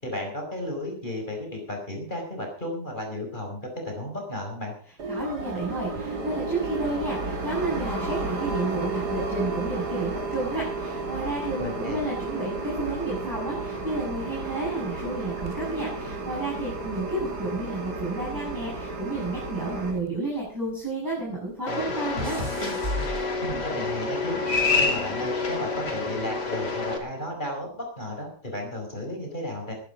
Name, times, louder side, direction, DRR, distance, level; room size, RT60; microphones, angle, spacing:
voice 1, 0.0-4.7 11.6-12.0 23.4-29.7, left 1 dB, 25° left, 1 dB, 5.2 m, -34 dB
sound 1, 5.0-20.0, right 3 dB, 70° right, 3.1 m, -32 dB
voice 2, 5.1-22.4, right 2 dB, 10° right, -6 dB, 6.6 m, -31 dB
sound 2, 15.4-17.9 18.2-20.8 21.1-23.9 24.7-25.0, equal, 35° right, 2.7 m, -37 dB
sound 3, 21.7-27.0, left 3 dB, 80° left, 3.6 m, -28 dB
20.5 x 10.5 x 5.1 m, 0.43 s
omnidirectional pair, 1.8 m